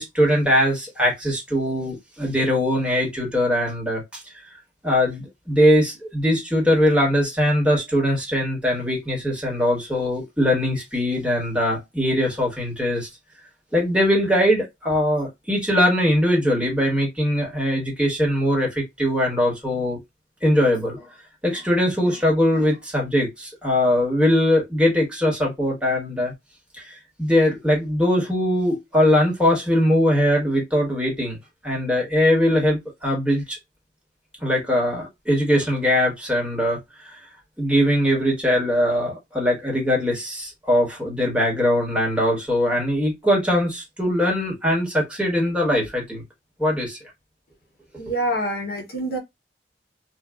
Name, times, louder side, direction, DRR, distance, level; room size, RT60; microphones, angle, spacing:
voice 1, 0.0-4.2 4.8-13.1 13.7-20.0 20.4-21.0 21.4-26.3 26.8-31.4 31.6-33.6 34.4-36.8 37.1-37.2 37.6-46.2 46.6-47.0, equal, 5° right, 1.2 m, -21 dB
voice 2, 48.0-49.2, right 1 dB, 60° left, 0.8 m, -26 dB
3.1 x 2.3 x 2.3 m
head